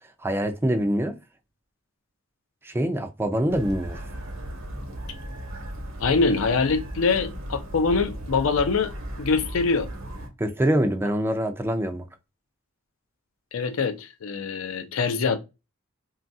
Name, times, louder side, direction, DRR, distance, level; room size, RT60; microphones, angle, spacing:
voice 1, 0.2-1.2 2.6-4.0 10.4-12.0, right 1 dB, 10° right, 0.3 m, -24 dB
sound 1, 3.5-10.3, right 1 dB, 75° right, 0.9 m, -36 dB
voice 2, 6.0-8.9 9.2-9.9 13.5-15.4, left 4 dB, 75° left, 0.5 m, -24 dB
3.0 x 2.3 x 2.6 m
head